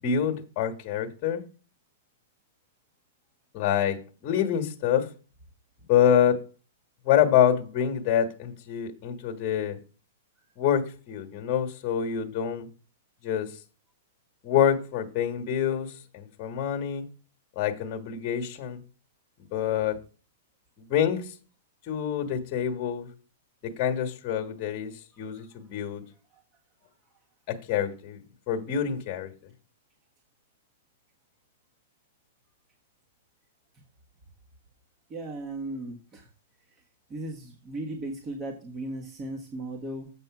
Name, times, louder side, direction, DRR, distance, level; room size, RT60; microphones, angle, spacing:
voice 1, 0.0-1.4 3.5-5.1 5.9-6.5 7.0-9.8 10.6-12.7 13.2-13.5 14.4-17.0 17.5-18.8 19.5-20.0 20.8-21.3 21.9-23.1 23.6-26.0 27.5-29.3, left 9 dB, 40° left, 1.3 m, -26 dB
voice 2, 35.1-36.3 37.1-40.1, right 2 dB, 25° right, 1.4 m, -36 dB
7.5 x 5.4 x 5.9 m
hypercardioid pair, 130°, 0 cm